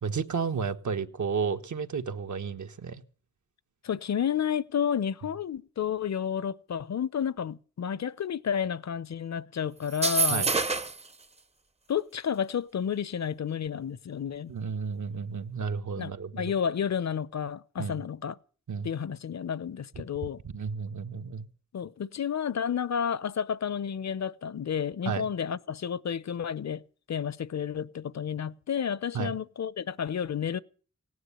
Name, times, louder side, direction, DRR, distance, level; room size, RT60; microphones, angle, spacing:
voice 1, 0.0-3.0 10.3-10.5 14.5-16.5 17.8-18.0 18.7-18.9 20.4-21.5 25.0-25.3 29.1-29.3, right 5 dB, 75° right, 1.4 m, -32 dB
voice 2, 3.8-10.5 11.9-14.5 16.0-18.4 18.8-20.4 21.7-26.8 27.1-30.6, left 8 dB, 60° left, 0.8 m, -31 dB
sound 1, 9.9-11.1, right 4 dB, 20° right, 0.7 m, -27 dB
17.5 x 9.6 x 8.3 m
wide cardioid pair, 85°, 30 cm